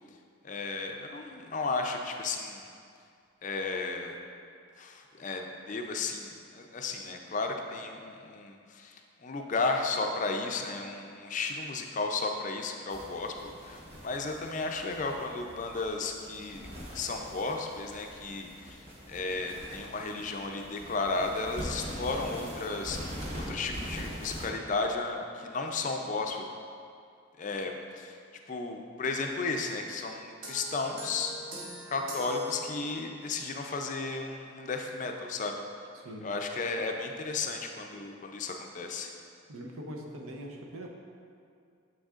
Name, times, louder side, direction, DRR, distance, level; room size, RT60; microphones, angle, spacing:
voice 1, 0.4-2.7 3.4-4.1 4.8-16.7 16.9-18.8 19.1-26.5 27.4-28.2 28.5-31.3 31.9-35.6 36.2-39.1, left 3 dB, 35° left, 3 dB, 0.4 m, -34 dB
sound 1, 12.9-24.5, equal, 30° right, 0.9 m, -43 dB
sound 2, 30.4-33.3, right 1 dB, 65° right, 1.0 m, -44 dB
voice 2, 35.9-36.3 39.5-40.9, equal, 90° right, 1 dB, 0.7 m, -42 dB
7.0 x 6.3 x 2.4 m, 2.3 s
head